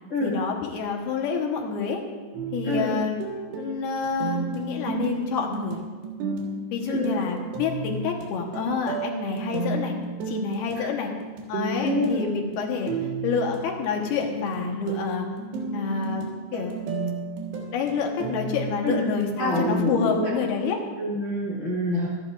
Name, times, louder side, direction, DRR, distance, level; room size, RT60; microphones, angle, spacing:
voice 1, 0.2-2.0 2.5-3.1 3.6-5.8 6.7-9.9 10.3-11.1 11.5-12.9 13.2-15.3 15.7-16.2 16.5-16.8 17.7-20.8, left 5 dB, 70° left, 2 dB, 3.0 m, -28 dB
sound 1, 2.3-20.3, right 3 dB, 80° right, 3.6 m, -33 dB
voice 2, 11.8-12.2 18.8-19.0 19.4-20.3 21.0-22.1, left 1 dB, 35° left, -5 dB, 1.2 m, -26 dB
24.5 x 10.5 x 2.5 m, 1.4 s
omnidirectional pair, 4.8 m